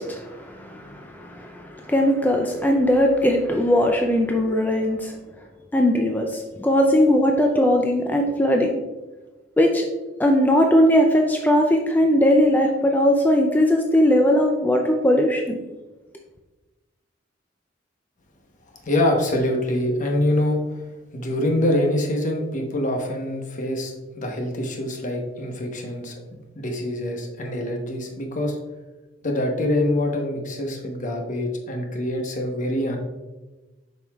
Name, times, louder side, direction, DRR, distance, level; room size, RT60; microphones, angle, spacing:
voice 1, 0.0-5.2 5.7-8.7 9.6-9.9 10.2-15.6, equal, 10° left, 2 dB, 0.4 m, -19 dB
voice 2, 18.7-20.8 21.1-26.1 26.5-28.6 29.2-33.0, left 1 dB, 40° left, 2 dB, 1.0 m, -25 dB
7.4 x 5.4 x 2.3 m, 1.1 s
head